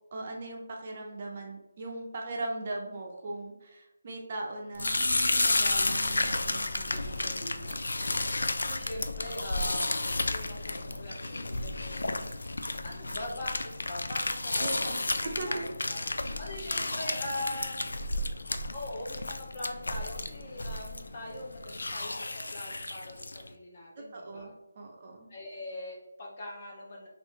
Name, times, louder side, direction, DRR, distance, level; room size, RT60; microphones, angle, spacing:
voice 1, 0.1-7.9 14.6-15.0 15.2-15.7 24.0-25.3, right 2 dB, 30° right, 0 dB, 0.6 m, -39 dB
sound 1, 4.7-23.5, left 2 dB, 85° left, 0.4 m, -32 dB
voice 2, 8.6-12.2 12.8-15.1 15.5-15.6 15.9-18.3 18.7-24.5 25.3-27.1, left 1 dB, 30° left, -3 dB, 0.8 m, -42 dB
3.5 x 2.5 x 3.2 m, 0.96 s
figure-of-eight pair, 170°, 0 cm